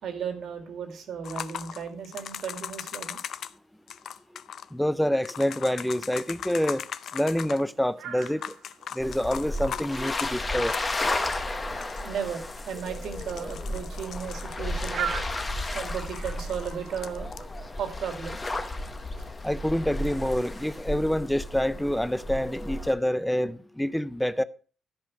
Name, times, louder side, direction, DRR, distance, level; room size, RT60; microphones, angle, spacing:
voice 1, 0.0-3.2 11.2-11.4 12.0-17.5 17.8-18.4 19.2-19.3, right 7 dB, 70° right, 2.3 m, -35 dB
sound 1, 1.2-3.5 3.9-4.7 5.2-7.7 8.2-11.1 11.5-11.6 11.8-12.1 12.7-15.3 15.6-17.4 18.6-18.7, left 9 dB, 65° left, 0.6 m, -39 dB
voice 2, 4.7-6.8 7.1-8.4 9.0-10.7 19.4-24.4, equal, ahead, 0.5 m, -27 dB
sound 2, 5.4-17.3, right 8 dB, 85° right, 1.8 m, -43 dB
sound 3, 9.0-22.9, left 2 dB, 20° left, 1.2 m, -33 dB
13.5 x 5.5 x 6.0 m
cardioid pair, 145°, 0 cm